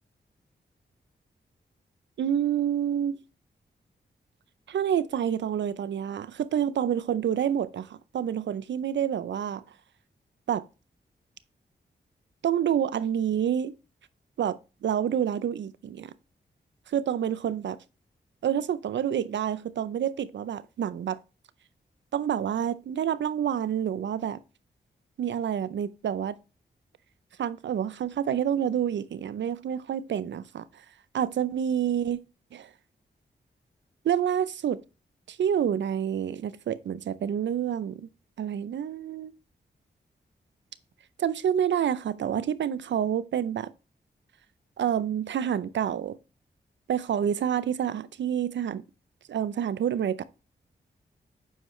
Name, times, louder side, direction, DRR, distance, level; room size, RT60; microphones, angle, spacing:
voice 1, 2.2-3.2 4.7-9.6 10.5-10.6 12.4-13.7 14.4-16.1 16.9-17.8 18.4-21.2 22.1-24.4 25.2-26.4 27.4-30.7 31.1-32.2 32.5-32.7 34.0-34.8 35.3-38.1 38.4-39.3 41.2-43.7 44.8-46.2 46.9-48.8 49.3-50.2, right 9 dB, 75° right, 0.5 m, -28 dB
7.8 x 4.7 x 3.1 m
cardioid pair, 50°, 19 cm